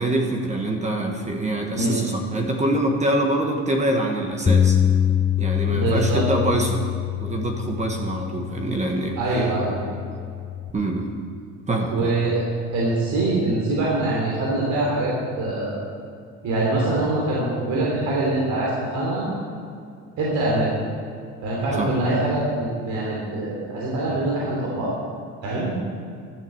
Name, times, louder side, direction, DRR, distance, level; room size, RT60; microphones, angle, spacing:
voice 1, 0.0-4.8 5.4-6.9 7.2-9.2 10.7-11.1 11.7-12.1 21.8-21.9, right 1 dB, 20° right, 2 dB, 1.4 m, -24 dB
Bass guitar, 4.5-10.7, left 9 dB, 15° left, 0.3 m, -24 dB
voice 2, 5.7-6.6 9.2-9.8 11.9-12.5 12.7-15.9 16.4-19.3 20.2-20.7 21.4-24.9 25.4-25.7, right 2 dB, 65° right, -5 dB, 3.4 m, -24 dB
12.0 x 7.7 x 7.9 m, 2.3 s
cardioid pair, 135°, 31 cm